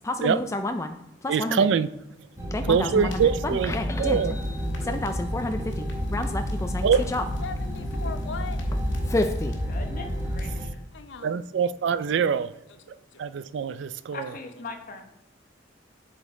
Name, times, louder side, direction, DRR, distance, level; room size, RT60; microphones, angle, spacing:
voice 1, 0.0-0.9 1.2-1.7 2.5-3.2 3.5-4.5 4.8-7.2 9.0-9.6, left 2 dB, 15° left, 0.3 m, -30 dB
voice 2, 1.3-1.9 2.6-4.4 4.8-5.0 6.8-7.1 11.2-12.5 13.2-14.3, right 6 dB, 70° right, 0.3 m, -24 dB
sound 1, 2.4-10.7, equal, 20° right, 1.4 m, -32 dB
sound 2, 3.1-10.5, left 1 dB, 85° left, 1.6 m, -34 dB
voice 3, 7.4-8.6 10.9-11.4 12.9-13.3, left 5 dB, 65° left, 0.6 m, -39 dB
voice 4, 9.7-10.8 14.1-15.1, left 3 dB, 50° left, 1.1 m, -40 dB
8.2 x 5.2 x 3.7 m
head